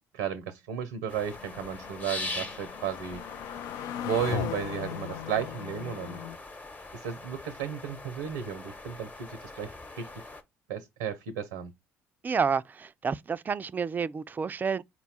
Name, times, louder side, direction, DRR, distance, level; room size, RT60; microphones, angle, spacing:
voice 1, 0.1-3.2 3.5-3.7 4.0-6.2 6.9-10.2 10.7-11.7, right 8 dB, 80° right, 0.5 m, -34 dB
sound 1, 1.1-10.4, left 2 dB, 25° left, 1.0 m, -42 dB
sound 2, 1.3-6.4, left 11 dB, 65° left, 0.3 m, -38 dB
voice 2, 12.2-14.8, right 6 dB, 30° right, 0.3 m, -29 dB
4.2 x 2.2 x 4.1 m
hypercardioid pair, 55°, 7 cm